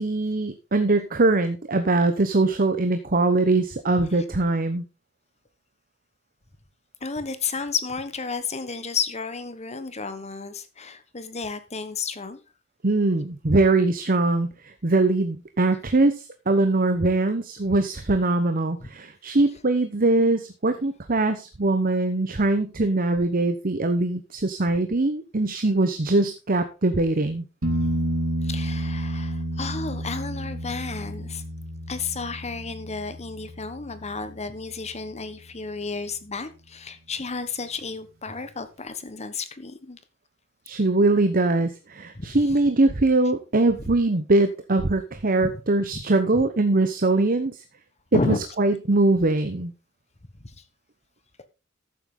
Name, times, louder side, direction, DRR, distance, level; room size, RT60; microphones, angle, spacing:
voice 1, 0.0-4.8 12.8-27.4 40.7-47.6 48.1-49.7, right 2 dB, 45° right, 1.0 m, -22 dB
voice 2, 7.0-12.4 28.4-31.4 31.9-40.0 42.1-42.4 45.4-45.6 45.9-46.0 46.3-46.4 48.1-48.4 50.4-50.5, left 4 dB, 35° left, 1.3 m, -32 dB
sound 1, 27.6-35.2 38.3-38.4, right 1 dB, 75° right, 2.3 m, -31 dB
13.5 x 7.9 x 3.9 m
head